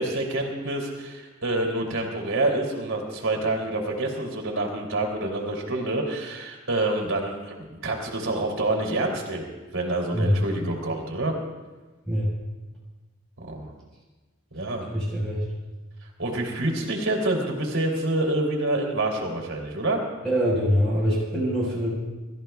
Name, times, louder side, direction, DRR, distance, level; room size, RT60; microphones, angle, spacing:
voice 1, 0.0-9.4 9.7-11.3 13.4-13.7 14.5-14.9 16.2-20.0, right 2 dB, 70° right, 0 dB, 3.2 m, -27 dB
voice 2, 14.9-15.4 20.2-21.9, equal, 5° left, -8 dB, 4.7 m, -24 dB
27.0 x 14.5 x 2.4 m, 1.2 s
head